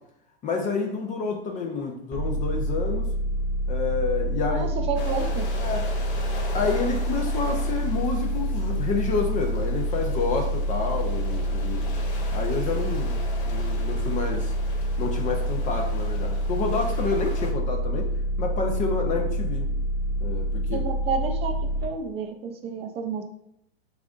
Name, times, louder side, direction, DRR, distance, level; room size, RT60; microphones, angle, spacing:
voice 1, 0.4-3.1 3.7-4.9 5.6-5.9 6.5-11.9 12.3-13.2 13.4-14.5 15.0-18.1 18.4-19.7 20.2-20.8, left 4 dB, 25° left, 2 dB, 0.6 m, -29 dB
sound 1, 2.1-21.8, equal, 5° left, 1.4 m, -27 dB
voice 2, 4.5-5.5 20.7-21.5 21.8-23.2, right 5 dB, 20° right, 5 dB, 0.4 m, -30 dB
sound 2, 5.0-17.5, left 3 dB, 65° left, 1.6 m, -41 dB
7.4 x 2.6 x 2.4 m, 0.75 s
hypercardioid pair, 130°, 32 cm